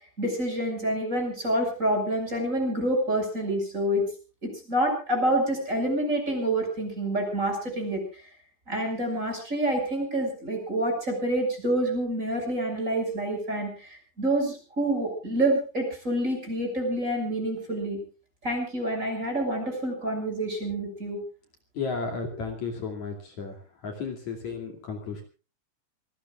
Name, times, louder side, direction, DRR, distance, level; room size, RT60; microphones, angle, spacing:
voice 1, 0.2-4.1 4.4-8.0 8.7-18.0 18.4-21.2, right 1 dB, 20° right, 3 dB, 6.6 m, -27 dB
voice 2, 21.8-23.5 23.8-25.2, left 4 dB, 55° left, 3 dB, 3.8 m, -33 dB
27.0 x 19.0 x 2.4 m, 0.36 s
omnidirectional pair, 4.2 m